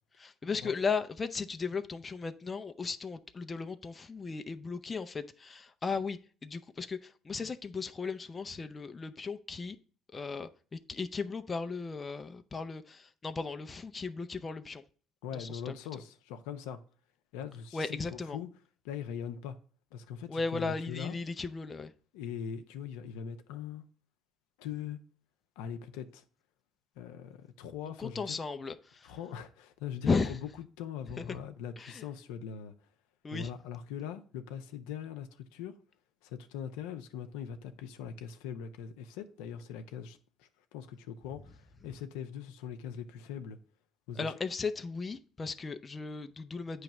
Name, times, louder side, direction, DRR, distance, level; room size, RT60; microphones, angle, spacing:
voice 1, 0.2-9.8 10.1-14.8 15.3-15.7 17.7-18.4 20.3-21.9 28.0-29.2 30.0-30.4 31.2-31.4 31.8-32.0 33.2-33.5 44.1-46.8, left 4 dB, 30° left, 0.6 m, -36 dB
voice 2, 15.2-16.8 17.3-18.0 18.3-18.5 18.8-19.6 19.9-21.2 22.1-23.8 24.6-25.0 25.6-26.2 27.0-28.4 29.0-30.4 30.8-32.7 33.3-35.7 36.2-43.6 44.1-44.3, left 8 dB, 85° left, 0.7 m, -41 dB
8.8 x 3.2 x 6.0 m
supercardioid pair, 70°, 0 cm